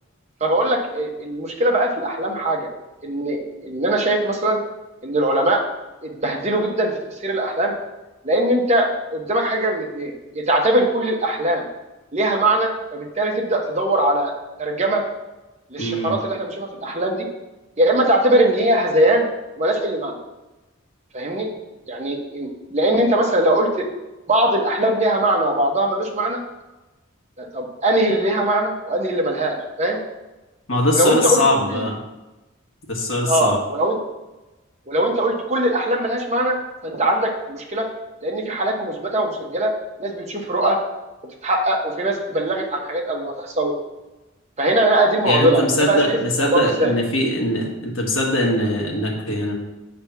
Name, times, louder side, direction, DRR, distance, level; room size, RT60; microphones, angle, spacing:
voice 1, 0.4-2.7 3.0-4.6 5.0-5.6 6.0-6.9 7.2-7.7 8.2-11.7 12.1-14.3 14.6-15.0 15.7-17.3 17.8-19.3 19.6-20.2 21.1-21.5 21.9-23.9 24.3-26.4 27.4-30.0 30.9-31.8 33.3-34.0 34.9-36.6 36.8-37.9 38.2-39.7 40.0-40.8 41.4-43.7 44.6-46.9, right 1 dB, 35° right, 1 dB, 1.0 m, -21 dB
voice 2, 15.8-16.1 30.7-32.0 32.9-33.6 45.2-49.5, left 1 dB, 65° left, -2 dB, 1.6 m, -21 dB
7.7 x 3.4 x 5.8 m, 1.1 s
head